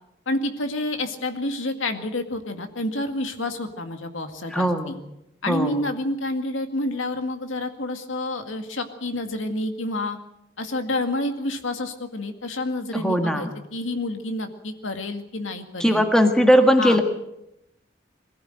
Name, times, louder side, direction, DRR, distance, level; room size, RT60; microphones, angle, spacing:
voice 1, 0.3-5.0 5.4-10.2 10.6-16.1 16.8-17.0, left 2 dB, 85° left, 7 dB, 2.0 m, -29 dB
voice 2, 4.5-5.0 5.5-5.8 12.9-13.5 15.8-17.0, equal, 5° left, 5 dB, 1.6 m, -19 dB
21.5 x 15.5 x 7.9 m, 0.85 s
head